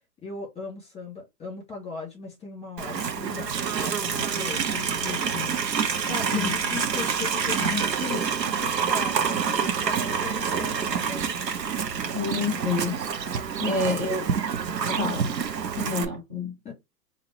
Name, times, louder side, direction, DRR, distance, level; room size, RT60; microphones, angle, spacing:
voice 1, 0.2-11.3 11.6-11.8 12.6-13.0 13.6-14.2 14.9-15.2 15.8-16.1 16.6-16.7, left 5 dB, 10° left, 2.6 m, -38 dB
Livestock farm animals working animals, 2.8-16.1, right 6 dB, 85° right, 1.0 m, -27 dB
voice 2, 12.1-13.0 13.7-14.2 15.0-15.3 15.9-16.7, left 3 dB, 10° right, 0.3 m, -28 dB
5.1 x 2.8 x 3.1 m
hypercardioid pair, 125°, 49 cm